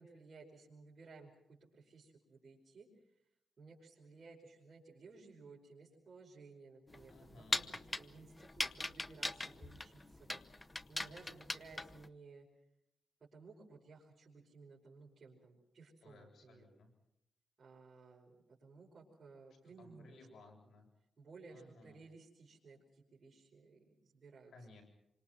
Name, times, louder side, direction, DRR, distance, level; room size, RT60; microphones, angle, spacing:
voice 1, 0.0-2.9 3.6-12.5 13.3-16.7 17.6-20.3 21.2-24.5, right 4 dB, 45° right, -5 dB, 5.5 m, -58 dB
sound 1, 6.9-12.1, left 2 dB, 20° left, 1.0 m, -40 dB
voice 2, 7.1-7.8 16.0-16.9 19.8-20.9 21.5-22.0 24.5-24.8, left 2 dB, 85° left, 3 dB, 7.7 m, -59 dB
28.0 x 25.5 x 6.0 m, 0.82 s
cardioid pair, 105°, 0 cm